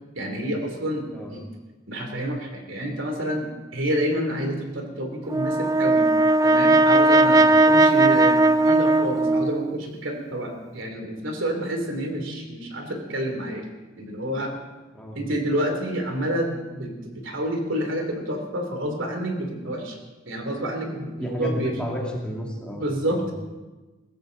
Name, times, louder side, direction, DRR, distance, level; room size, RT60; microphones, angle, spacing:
voice 1, 0.1-1.0 1.3-1.4 1.9-3.5 3.7-6.1 6.4-13.6 14.0-14.5 15.1-20.0 20.3-21.7 22.8-23.3, equal, 70° right, 3 dB, 3.1 m, -28 dB
Brass instrument, 5.3-9.7, right 2 dB, 15° right, 0.4 m, -18 dB
voice 2, 21.2-23.2, equal, 5° left, -2 dB, 2.7 m, -32 dB
22.0 x 16.0 x 4.0 m, 1.2 s
head